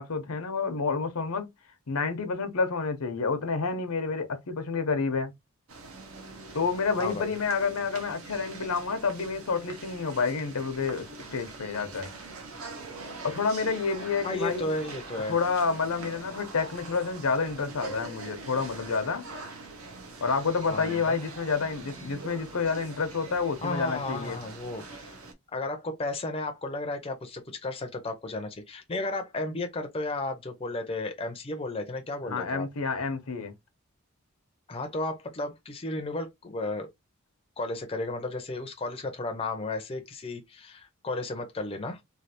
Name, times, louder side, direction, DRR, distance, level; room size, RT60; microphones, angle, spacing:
voice 1, 0.0-1.5 1.9-5.3 6.5-12.1 13.2-14.7 15.3-19.2 20.2-24.4 32.2-33.5, left 4 dB, 85° left, 0.7 m, -29 dB
sound 1, 5.7-25.3, right 3 dB, 75° right, 0.8 m, -43 dB
voice 2, 7.0-7.3 14.2-15.4 20.7-21.2 23.6-25.2 25.5-32.7 34.7-36.9 37.6-42.0, left 2 dB, 25° left, 0.5 m, -33 dB
3.2 x 2.3 x 2.7 m
head